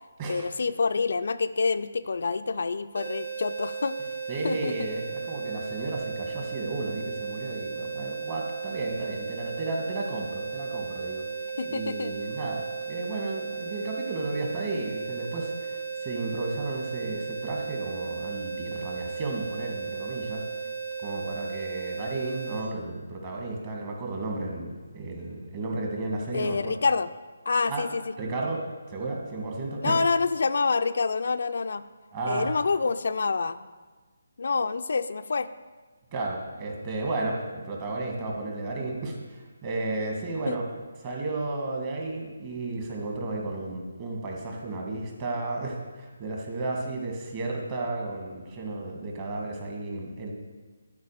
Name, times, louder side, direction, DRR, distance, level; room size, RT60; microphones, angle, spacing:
voice 1, 0.3-3.9 4.4-4.9 11.6-12.2 26.3-27.1 27.5-28.1 29.8-31.8 32.3-33.6 34.4-35.5 40.5-40.6, left 4 dB, 60° left, 10 dB, 0.4 m, -27 dB
sound 1, 2.9-22.7, right 5 dB, 75° right, 1.4 m, -35 dB
voice 2, 4.3-11.2 11.7-20.4 21.0-26.7 27.7-27.8 28.2-30.0 32.1-32.5 36.1-40.6 41.0-50.3, right 2 dB, 30° right, 0 dB, 1.9 m, -33 dB
12.0 x 4.8 x 6.6 m, 1.3 s
figure-of-eight pair, 150°, 0 cm